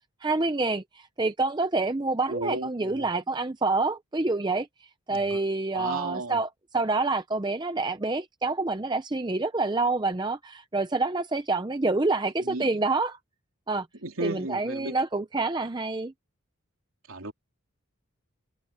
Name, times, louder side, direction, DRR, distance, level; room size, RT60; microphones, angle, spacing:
voice 1, 0.2-4.7 5.1-6.5 6.7-13.2 13.7-13.9 14.2-16.1, right 3 dB, 20° right, 0.6 m, -27 dB
voice 2, 2.3-3.1 5.1-5.4 5.7-6.4 12.4-12.9 14.0-14.9 17.1-17.3, right 2 dB, 75° right, 2.9 m, -34 dB
head